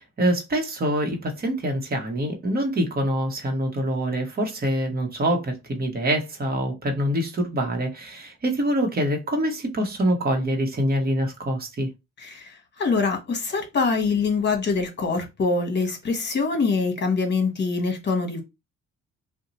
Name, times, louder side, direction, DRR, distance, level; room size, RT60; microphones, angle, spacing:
voice 1, 0.0-11.9, right 1 dB, 30° right, 1.0 m, -25 dB
voice 2, 12.2-18.4, left 4 dB, 35° left, 1.1 m, -24 dB
2.7 x 2.2 x 4.0 m
cardioid pair, 90°, 30 cm